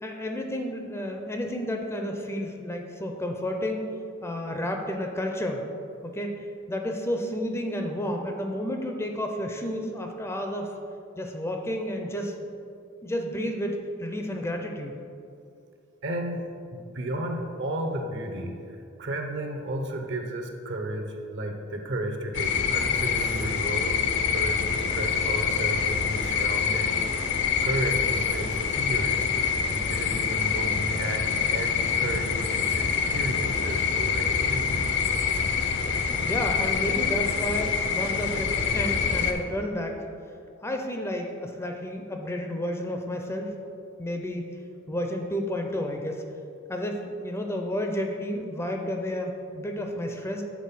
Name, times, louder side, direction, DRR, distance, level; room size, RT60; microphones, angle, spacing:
voice 1, 0.0-3.9 4.2-5.6 6.0-10.7 11.2-12.3 13.0-15.0 36.2-40.0 40.6-43.5 44.0-44.6 44.9-46.2 46.7-50.4, equal, 15° left, 3 dB, 0.5 m, -31 dB
voice 2, 16.0-16.4 16.7-27.1 27.6-29.2 29.6-34.8, right 1 dB, 60° right, 4 dB, 0.8 m, -33 dB
sound 1, 22.3-39.3, left 6 dB, 60° left, 0.6 m, -26 dB
7.4 x 4.0 x 5.6 m, 2.4 s
head